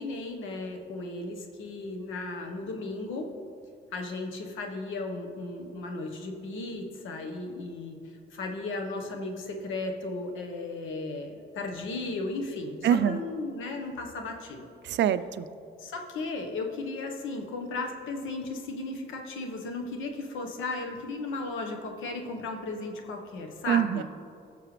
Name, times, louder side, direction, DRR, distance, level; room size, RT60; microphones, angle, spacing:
voice 1, 0.0-3.3 3.9-8.0 8.3-14.7 15.8-24.0, left 3 dB, 80° left, 3 dB, 1.3 m, -35 dB
voice 2, 12.8-13.2 14.8-15.5 23.7-24.0, right 9 dB, 65° right, 13 dB, 0.4 m, -24 dB
17.0 x 6.7 x 3.3 m, 2.4 s
cardioid pair, 90°, 20 cm